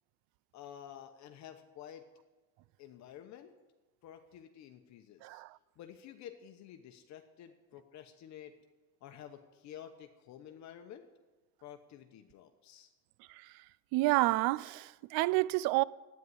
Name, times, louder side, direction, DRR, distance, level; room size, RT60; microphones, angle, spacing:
voice 1, 0.5-2.1 2.8-3.5 4.0-5.4 5.8-8.6 9.0-11.1 11.6-12.9, left 10 dB, 50° left, 1.0 m, -51 dB
voice 2, 13.9-15.8, right 19 dB, 80° right, 0.5 m, -29 dB
12.5 x 9.3 x 9.6 m
cardioid pair, 170°, 35 cm